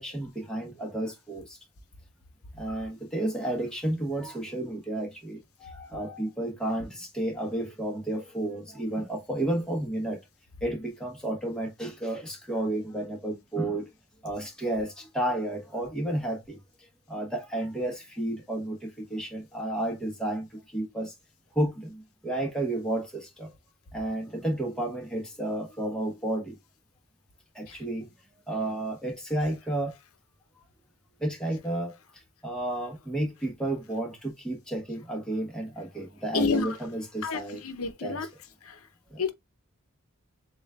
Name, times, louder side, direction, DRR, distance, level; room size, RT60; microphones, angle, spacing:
voice 1, 0.0-1.6 2.5-10.2 10.6-13.9 14.2-16.6 17.1-21.1 21.5-23.5 23.9-26.6 27.5-28.1 28.5-30.0 31.2-32.0 32.4-37.6 38.0-38.3 39.1-39.2, right 1 dB, 5° left, 1.1 m, -32 dB
voice 2, 36.3-36.8 37.2-38.3 38.6-38.8 39.2-39.3, left 5 dB, 90° left, 0.8 m, -29 dB
7.1 x 2.4 x 2.3 m
head